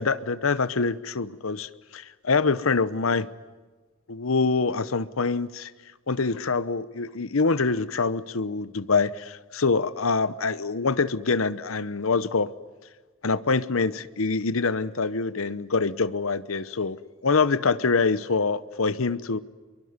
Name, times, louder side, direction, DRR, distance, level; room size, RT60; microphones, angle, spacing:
voice 1, 0.0-3.3 4.1-5.7 6.1-12.5 13.2-19.4, left 4 dB, 75° left, 17 dB, 0.9 m, -25 dB
26.0 x 23.0 x 9.7 m, 1.4 s
head